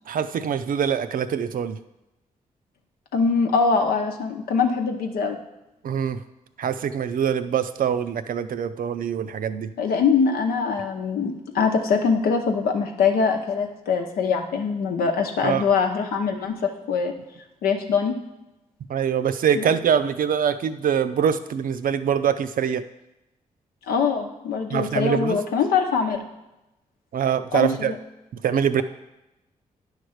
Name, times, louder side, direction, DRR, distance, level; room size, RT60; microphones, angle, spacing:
voice 1, 0.1-1.8 5.8-6.2 6.6-9.7 15.4-15.6 18.9-22.8 24.7-25.4 27.1-27.9 28.4-28.8, right 8 dB, 65° right, 11 dB, 0.5 m, -24 dB
voice 2, 3.1-5.4 9.8-17.1 17.6-18.1 19.5-19.7 23.9-26.2 27.5-28.0, left 5 dB, 90° left, 4 dB, 0.8 m, -23 dB
9.7 x 3.3 x 6.4 m, 0.95 s
supercardioid pair, 50°, 15 cm